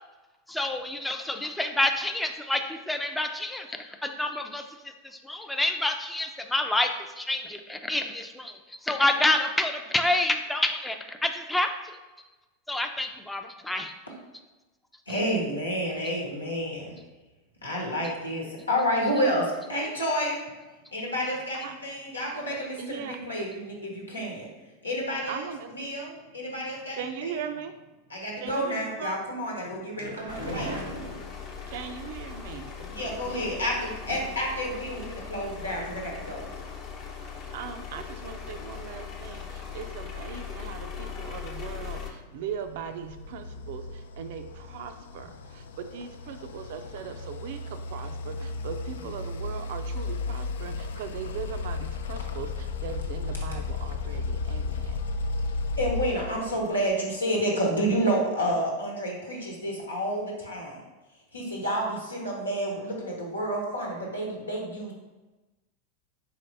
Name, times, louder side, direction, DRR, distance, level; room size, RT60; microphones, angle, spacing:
voice 1, 0.5-4.6 5.0-12.0 12.7-13.9, left 1 dB, 5° left, 5 dB, 0.4 m, -28 dB
voice 2, 15.1-17.0 17.6-20.4 20.9-24.5 24.8-27.5 28.1-30.7 32.9-36.5 49.0-49.1 55.8-60.8 61.3-64.9, equal, 90° left, -2 dB, 1.1 m, -30 dB
voice 3, 22.8-23.2 25.3-25.7 26.9-27.7 28.4-29.2 31.7-32.7 37.5-55.0, right 7 dB, 60° right, 8 dB, 0.4 m, -39 dB
sound 1, 29.6-31.7 32.7-33.6 34.1-34.5 34.8-34.9 35.2-35.3, right 1 dB, 85° right, 0.8 m, -38 dB
sound 2, 30.3-42.1, left 7 dB, 45° left, 0.9 m, -39 dB
sound 3, 42.5-56.9, left 3 dB, 70° left, 0.3 m, -34 dB
4.2 x 3.1 x 3.9 m, 1.1 s
figure-of-eight pair, 90°, 0 cm